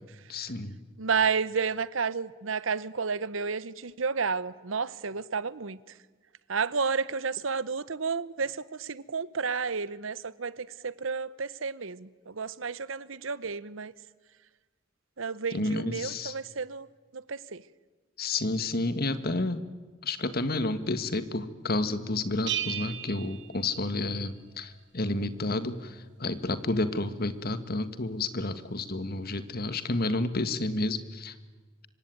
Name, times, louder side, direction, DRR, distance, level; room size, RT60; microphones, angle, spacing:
voice 1, 0.3-0.8 15.5-16.3 18.2-19.6 20.0-31.3, left 2 dB, 50° left, 12 dB, 1.7 m, -30 dB
voice 2, 1.0-5.8 6.5-13.9 15.2-16.9 17.1-17.6, right 5 dB, 90° right, 18 dB, 1.0 m, -31 dB
Bell, 22.5-24.3, right 11 dB, 60° right, 1.8 m, -35 dB
26.0 x 24.0 x 9.3 m, 1.3 s
head